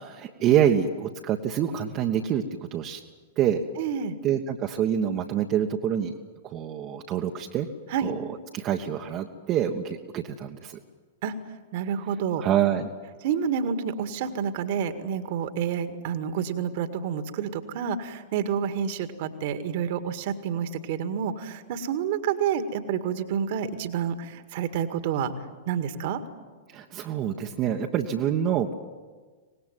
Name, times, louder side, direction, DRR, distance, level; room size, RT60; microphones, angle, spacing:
voice 1, 0.0-2.4 2.7-3.0 3.4-3.6 4.2-6.1 6.4-7.7 8.0-10.8 12.4-12.9 26.7-28.7, right 9 dB, 30° right, 2 dB, 1.4 m, -26 dB
voice 2, 3.8-4.2 7.9-8.1 11.2-11.3 11.7-12.4 13.2-25.3 25.7-26.2, right 7 dB, 50° right, 10 dB, 2.0 m, -29 dB
24.5 x 20.0 x 9.3 m, 1.4 s
figure-of-eight pair, 100°, 0 cm